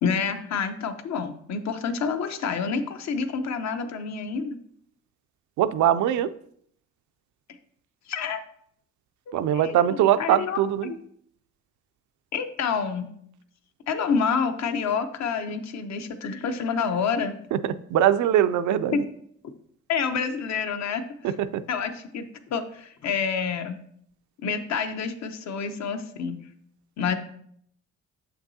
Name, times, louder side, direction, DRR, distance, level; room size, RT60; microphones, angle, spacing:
voice 1, 0.0-4.6 8.1-8.4 9.3-11.0 12.3-13.1 13.9-17.4 18.9-19.0 19.9-21.0 21.7-23.8 24.4-26.4 27.0-27.2, left 6 dB, 65° left, 8 dB, 0.8 m, -28 dB
voice 2, 5.6-6.3 9.3-10.9 17.5-19.1 21.2-21.6, right 11 dB, 75° right, 12 dB, 0.5 m, -22 dB
6.9 x 6.0 x 2.7 m, 0.66 s
cardioid pair, 90°, 30 cm